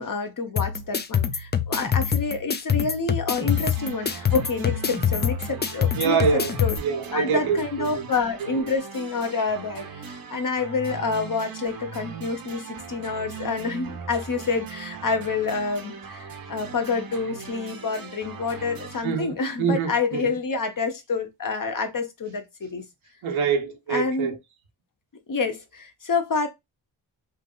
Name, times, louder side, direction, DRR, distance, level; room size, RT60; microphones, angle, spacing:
voice 1, 0.0-6.7 7.1-22.9 23.9-24.3 25.3-26.5, left 4 dB, 45° left, 0.9 m, -28 dB
sound 1, 0.6-6.8, left 8 dB, 25° left, 0.4 m, -25 dB
sound 2, 3.4-19.0, right 6 dB, 50° right, 0.8 m, -39 dB
voice 2, 6.0-8.0 8.5-8.6 19.0-20.4 23.2-24.4, right 6 dB, 80° right, 1.0 m, -25 dB
3.3 x 2.6 x 2.4 m
cardioid pair, 60°, 47 cm